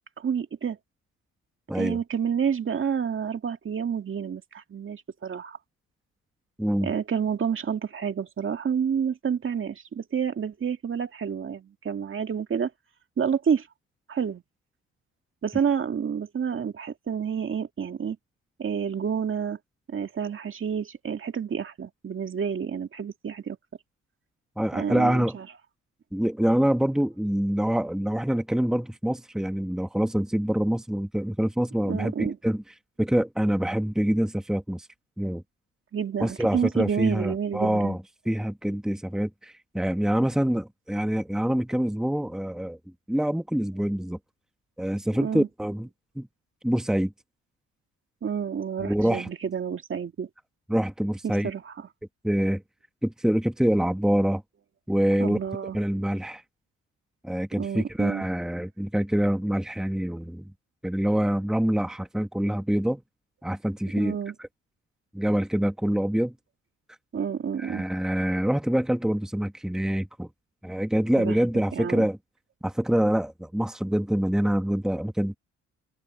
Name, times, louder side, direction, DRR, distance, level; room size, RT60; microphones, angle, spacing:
voice 1, 0.2-0.8 1.7-5.6 6.8-12.7 13.2-13.7 14.1-14.4 15.4-18.2 18.6-19.6 19.9-23.6 24.7-25.5 31.9-32.4 35.9-38.0 45.2-45.5 48.2-50.3 51.4-51.7 55.2-55.8 57.6-58.2 64.0-64.3 67.1-67.9 71.2-71.4 71.7-72.1, right 7 dB, 45° right, 2.1 m, -29 dB
voice 2, 1.7-2.0 6.6-6.9 24.6-25.4 26.1-32.6 33.0-34.9 35.2-35.4 36.2-42.8 43.1-44.2 44.8-45.9 46.1-46.3 46.6-47.1 48.8-49.3 50.7-51.5 52.2-52.6 53.0-54.4 54.9-55.4 55.7-56.4 57.2-60.5 60.8-63.0 63.4-64.2 65.1-66.3 67.6-70.3 70.6-72.2 72.6-75.3, equal, ahead, 1.5 m, -25 dB
open air
cardioid pair, 90°, 30 cm